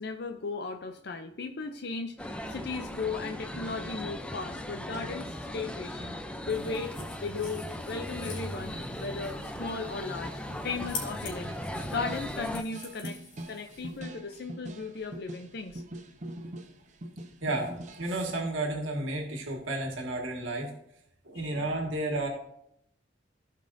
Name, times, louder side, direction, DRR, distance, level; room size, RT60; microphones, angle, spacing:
voice 1, 0.0-7.0 7.2-13.2 13.5-15.8 21.3-21.7, left 4 dB, 55° left, 5 dB, 0.5 m, -37 dB
sound 1, 2.2-12.6, left 1 dB, 5° left, 0.5 m, -38 dB
sound 2, 2.4-18.4, right 1 dB, 40° right, 0.8 m, -45 dB
sound 3, 6.5-14.0, left 4 dB, 75° left, 3.0 m, -46 dB
voice 2, 17.4-17.7 18.0-20.7 21.2-22.3, right 2 dB, 85° right, 1 dB, 1.7 m, -32 dB
16.0 x 5.4 x 2.6 m, 0.72 s
head